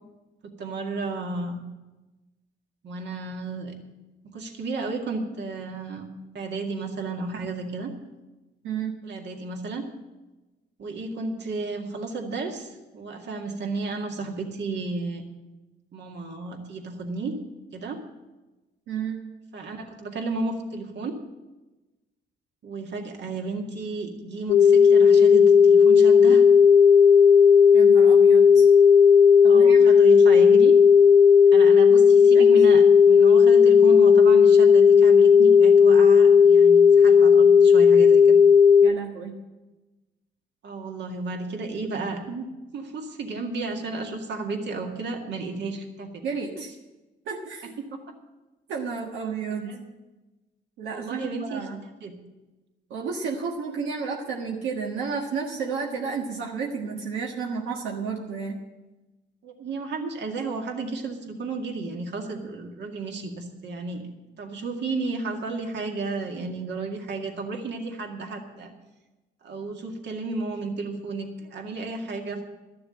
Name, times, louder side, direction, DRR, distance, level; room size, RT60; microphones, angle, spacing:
voice 1, 0.4-1.6 2.8-3.7 4.3-6.1 6.3-7.9 9.0-9.8 10.8-15.2 15.9-17.3 17.7-18.0 19.5-21.1 22.6-26.4 29.5-30.7 31.5-38.4 40.6-42.5 42.7-46.2 46.6-46.7 47.8-48.0 49.7-49.8 50.9-52.2 59.4-64.0 64.4-68.7 69.4-72.4, right 3 dB, 60° right, 2 dB, 2.1 m, -32 dB
voice 2, 18.9-19.2 27.7-28.7 29.4-29.9 32.3-32.5 38.8-39.4 46.2-46.7 47.3-47.7 48.7-49.7 50.8-51.8 52.9-58.6, right 5 dB, 85° right, -1 dB, 1.5 m, -32 dB
sound 1, 24.5-38.9, left 6 dB, 75° left, 0.8 m, -14 dB
13.0 x 6.9 x 8.7 m, 1.1 s
cardioid pair, 90°, 20 cm